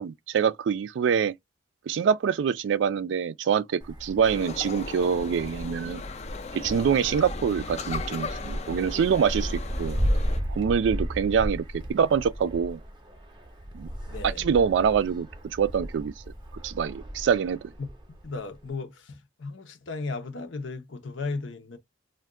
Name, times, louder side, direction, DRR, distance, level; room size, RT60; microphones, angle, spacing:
voice 1, 0.0-1.3 1.9-6.0 6.5-10.0 10.5-12.8 13.7-13.9 14.2-15.3 15.6-16.1 16.6-17.7, right 7 dB, 75° right, 0.3 m, -25 dB
Wind, 3.8-18.7, equal, 25° right, 0.7 m, -34 dB
sound 1, 4.2-10.4, left 4 dB, 35° left, 0.4 m, -37 dB
voice 2, 14.1-14.5 17.8-17.9 18.2-21.8, left 3 dB, 85° left, 0.8 m, -35 dB
2.5 x 2.3 x 3.6 m
head